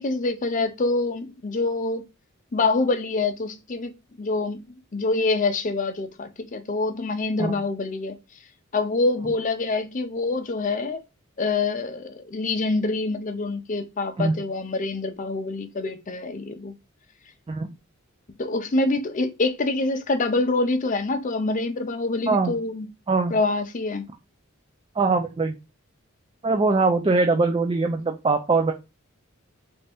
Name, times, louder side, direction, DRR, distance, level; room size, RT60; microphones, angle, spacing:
voice 1, 0.0-2.0 2.5-3.9 4.2-8.2 8.7-11.0 11.4-16.7 18.4-22.9 23.3-24.1, left 3 dB, 35° left, 0.5 m, -26 dB
voice 2, 25.0-25.5 26.4-28.7, right 3 dB, 25° right, 0.3 m, -22 dB
3.3 x 2.7 x 3.4 m
head